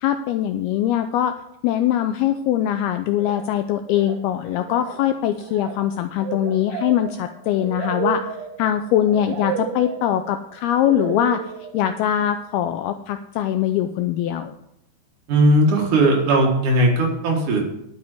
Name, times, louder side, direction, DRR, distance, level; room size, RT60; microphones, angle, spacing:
voice 1, 0.0-1.4 1.6-8.3 8.6-11.4 11.7-14.5, left 11 dB, 90° left, 8 dB, 2.2 m, -22 dB
sound 1, 3.2-3.6 3.9-4.3 4.6-12.2, right 9 dB, 75° right, 2.9 m, -33 dB
voice 2, 15.3-17.6, right 1 dB, 55° right, 0 dB, 2.8 m, -17 dB
11.5 x 7.3 x 6.1 m, 0.79 s
omnidirectional pair, 5.0 m